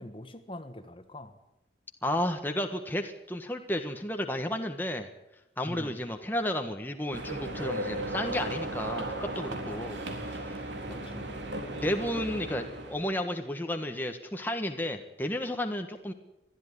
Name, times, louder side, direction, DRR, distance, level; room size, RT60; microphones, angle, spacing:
voice 1, 0.0-1.4 5.7-5.9 10.9-11.3, left 1 dB, 30° left, 9 dB, 1.5 m, -44 dB
voice 2, 2.0-5.1 5.6-10.0 10.3-10.5 11.7-16.1, left 1 dB, 10° left, 4 dB, 1.4 m, -32 dB
sound 1, 7.1-13.1, right 1 dB, 75° right, 3.8 m, -36 dB
21.5 x 13.5 x 9.8 m, 0.89 s
head